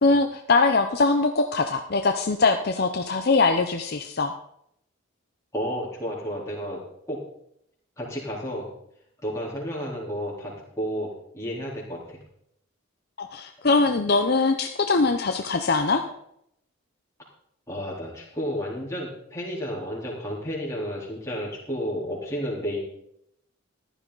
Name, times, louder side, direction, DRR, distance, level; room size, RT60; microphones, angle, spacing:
voice 1, 0.0-4.4 13.2-16.0, left 3 dB, 50° left, 5 dB, 0.7 m, -22 dB
voice 2, 5.5-6.8 7.1-7.2 8.0-8.7 9.2-11.1 11.3-12.2 17.7-22.8, equal, 15° left, -4 dB, 3.7 m, -31 dB
14.5 x 11.5 x 4.0 m, 0.75 s
head